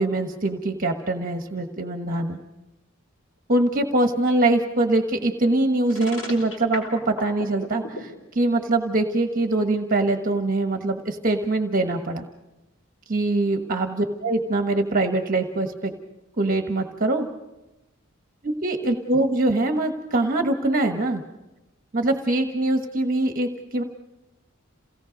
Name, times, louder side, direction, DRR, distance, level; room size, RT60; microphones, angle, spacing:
voice 1, 0.0-2.4 3.5-12.2 13.1-15.9 16.4-17.3 18.4-21.2 21.9-23.8, right 2 dB, 40° right, 5 dB, 1.3 m, -23 dB
sound 1, 5.9-8.0, left 1 dB, 85° left, 5.1 m, -34 dB
28.0 x 18.0 x 5.2 m, 0.99 s
head